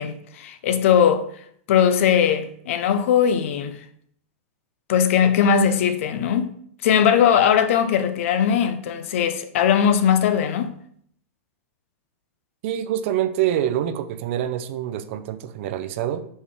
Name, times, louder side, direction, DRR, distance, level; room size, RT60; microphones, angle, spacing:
voice 1, 0.0-3.9 4.9-10.8, left 8 dB, 65° left, 0.5 m, -20 dB
voice 2, 12.6-16.3, right 11 dB, 60° right, 0.5 m, -25 dB
4.1 x 3.3 x 3.5 m
hypercardioid pair, 115°, 7 cm